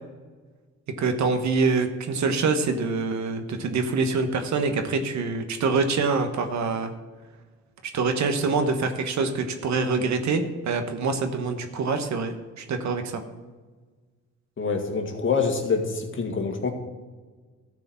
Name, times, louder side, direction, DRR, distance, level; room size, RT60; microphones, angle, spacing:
voice 1, 1.0-6.9 7.9-13.2, right 4 dB, 65° right, 7 dB, 1.3 m, -25 dB
voice 2, 14.6-16.7, left 5 dB, 40° left, 2 dB, 2.0 m, -26 dB
13.5 x 5.0 x 7.1 m, 1.4 s
cardioid pair, 90°, 30 cm